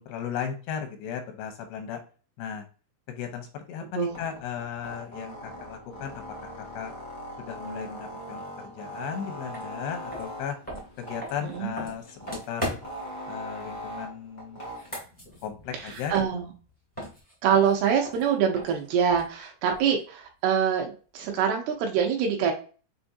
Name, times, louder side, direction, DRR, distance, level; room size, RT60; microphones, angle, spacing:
voice 1, 0.0-2.0 2.4-2.7 3.1-6.2 6.7-6.9 7.4-10.6 11.0-12.7 13.3-14.6 15.4-16.4, left 8 dB, 85° left, 5 dB, 2.8 m, -36 dB
sound 1, 4.1-15.0, equal, 55° left, 0.9 m, -41 dB
sound 2, 9.5-9.7 10.1-13.1 14.6-16.7 16.9-20.0, equal, 20° left, 0.6 m, -39 dB
voice 2, 11.4-11.7 15.7-16.5 17.4-22.5, right 7 dB, 75° right, 2 dB, 2.6 m, -25 dB
6.9 x 2.5 x 2.6 m, 0.37 s
omnidirectional pair, 4.8 m